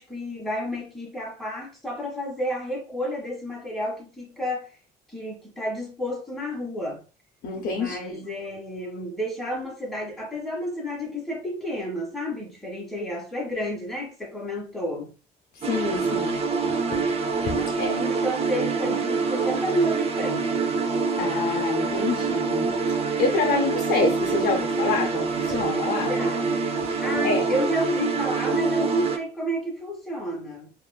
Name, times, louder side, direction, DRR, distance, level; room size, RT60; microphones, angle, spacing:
voice 1, 0.0-4.8 5.1-7.0 7.7-15.1 17.5-20.9 25.9-26.5 27.0-30.7, equal, ahead, 1.4 m, -31 dB
voice 2, 7.4-8.2 15.5-16.5 16.9-18.0 21.2-26.1 26.8-27.5, left 4 dB, 60° left, 0.5 m, -27 dB
sound 1, 15.6-29.2, right 5 dB, 35° right, 0.5 m, -26 dB
2.9 x 2.4 x 2.2 m
cardioid pair, 110°, 17 cm